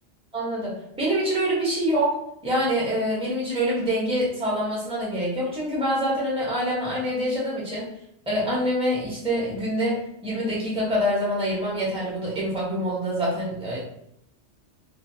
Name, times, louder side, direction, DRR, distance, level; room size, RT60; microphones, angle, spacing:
voice 1, 0.3-2.2 2.4-7.9 8.3-13.8, equal, 5° right, -7 dB, 1.0 m, -25 dB
2.6 x 2.5 x 2.7 m, 0.75 s
omnidirectional pair, 1.2 m